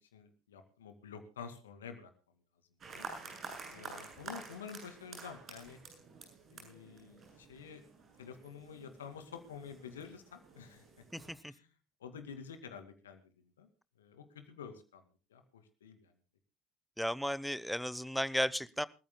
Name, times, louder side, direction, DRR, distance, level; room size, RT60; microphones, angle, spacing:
voice 1, 0.0-2.1 2.9-3.1 3.7-5.8 6.5-7.8 8.2-11.1 11.4-11.7 12.0-13.7 14.0-16.1, left 6 dB, 80° left, 8 dB, 2.3 m, -49 dB
sound 1, 2.8-11.3, right 4 dB, 45° right, 7.9 m, -50 dB
voice 2, 11.1-11.5 17.0-18.9, equal, ahead, 18 dB, 0.9 m, -34 dB
28.0 x 14.5 x 2.2 m, 0.33 s
figure-of-eight pair, 55°, 0 cm